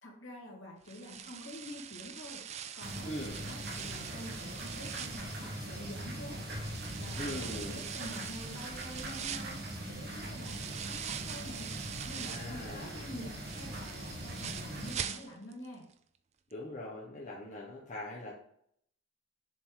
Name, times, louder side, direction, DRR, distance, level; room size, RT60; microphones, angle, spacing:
voice 1, 0.0-2.4 2.7-6.4 6.9-9.6 9.8-11.7 12.0-15.9, left 1 dB, 65° left, -2 dB, 2.2 m, -47 dB
sound 1, 0.9-6.1 6.6-12.6 13.0-15.7 15.9-16.0 16.5-16.6, right 8 dB, 35° right, 0.3 m, -43 dB
sound 2, 2.8-15.0, right 1 dB, 50° right, 1.6 m, -41 dB
voice 2, 3.0-3.4 7.2-7.9 12.2-13.0 16.5-18.3, left 1 dB, 35° left, -5 dB, 1.1 m, -41 dB
7.1 x 4.0 x 3.9 m, 0.69 s
head